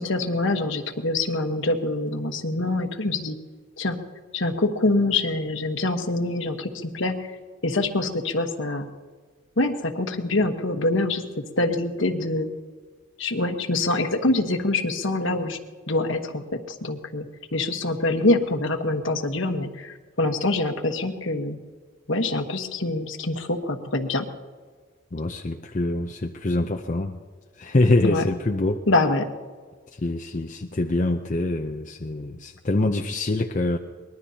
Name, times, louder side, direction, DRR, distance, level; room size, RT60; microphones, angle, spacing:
voice 1, 0.0-3.4 3.8-4.0 4.3-7.3 7.6-8.9 9.6-12.5 13.2-15.6 15.9-17.3 17.5-21.6 22.1-24.3 28.0-28.2 28.9-29.3, left 2 dB, 65° left, 6 dB, 1.3 m, -25 dB
voice 2, 25.1-27.2 27.6-28.8 30.0-33.8, left 2 dB, 35° left, 3 dB, 0.6 m, -24 dB
24.0 x 20.5 x 2.9 m, 1.5 s
head